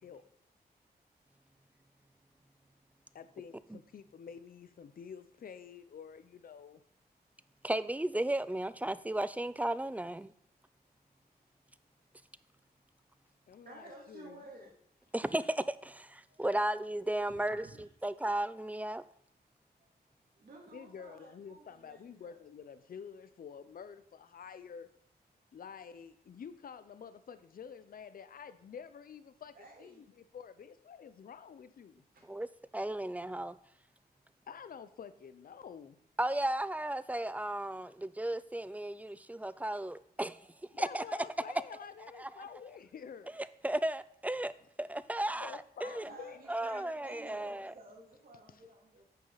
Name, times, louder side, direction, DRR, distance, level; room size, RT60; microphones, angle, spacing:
voice 1, 3.1-6.8 13.5-14.4 20.7-24.9 25.5-32.0 34.5-36.0 40.7-43.3 45.4-46.4 48.5-48.7, left 7 dB, 65° left, 0.6 m, -49 dB
voice 2, 7.6-10.3 15.1-19.0 32.3-32.5 32.7-33.6 36.2-40.4 40.8-41.0 42.2-42.3 43.3-44.5 44.8-46.1 46.5-47.7, right 1 dB, 10° right, 0.3 m, -34 dB
voice 3, 13.6-14.7 16.3-16.4 17.3-17.8 20.4-22.3 29.5-30.1 45.8-49.0, right 2 dB, 65° right, 2.7 m, -53 dB
9.2 x 6.6 x 4.0 m
wide cardioid pair, 105°, 16 cm